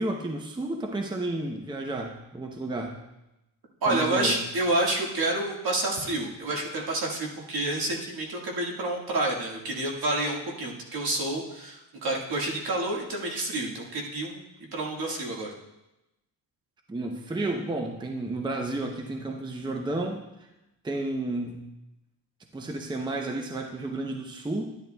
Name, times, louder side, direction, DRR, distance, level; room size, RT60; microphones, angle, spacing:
voice 1, 0.0-3.0 3.9-4.4 16.9-20.2 20.8-21.6 22.5-24.7, right 2 dB, 10° right, 2 dB, 0.6 m, -31 dB
voice 2, 3.8-14.4 14.7-15.5, right 2 dB, 65° right, -1 dB, 1.7 m, -29 dB
10.5 x 10.5 x 2.2 m, 0.93 s
wide cardioid pair, 125°, 39 cm